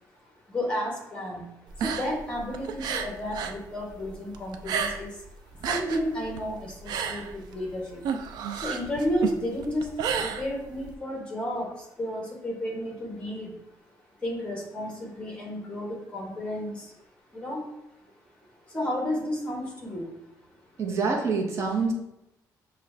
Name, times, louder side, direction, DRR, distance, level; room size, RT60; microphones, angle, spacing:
voice 1, 0.5-1.4 1.8-5.1 5.7-7.8 8.6-9.9 10.2-11.7 12.0-13.5 14.2-16.8 17.3-17.6 18.7-20.1, left 1 dB, 15° left, -1 dB, 1.1 m, -32 dB
sound 1, 1.7-3.6 3.9-5.2 5.5-10.9, right 7 dB, 80° right, 0.4 m, -31 dB
voice 2, 20.8-21.9, right 4 dB, 45° right, 0 dB, 0.8 m, -26 dB
5.9 x 2.4 x 3.2 m, 0.87 s
cardioid pair, 170°, 7 cm